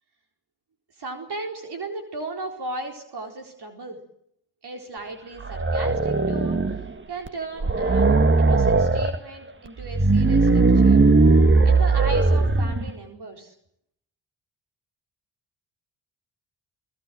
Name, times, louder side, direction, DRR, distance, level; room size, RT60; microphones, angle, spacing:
voice 1, 1.0-4.0 4.6-6.6 7.1-8.1 8.4-11.1 11.6-13.5, right 2 dB, 60° right, 3 dB, 4.4 m, -36 dB
sound 1, 5.4-6.9 7.3-7.4 7.6-9.2 9.8-12.9, right 3 dB, 25° right, 1.8 m, -18 dB
29.0 x 19.5 x 7.8 m, 0.73 s
cardioid pair, 65°, 44 cm